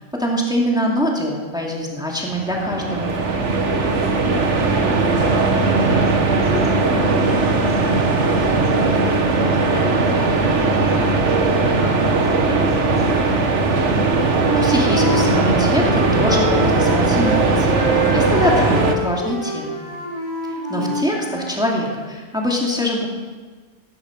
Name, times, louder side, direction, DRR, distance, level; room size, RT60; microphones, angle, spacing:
voice 1, 0.2-3.1 14.5-19.8 20.5-23.1, equal, 5° right, -2 dB, 2.5 m, -23 dB
sound 1, 2.3-19.0, right 3 dB, 80° right, 1.7 m, -18 dB
voice 2, 4.2-4.5 4.8-13.4 20.7-21.2, left 1 dB, 75° left, -5 dB, 5.5 m, -32 dB
Wind instrument woodwind instrument, 14.0-17.4 17.7-21.6, equal, 25° right, 4.1 m, -26 dB
17.5 x 13.5 x 5.3 m, 1.4 s
omnidirectional pair, 1.2 m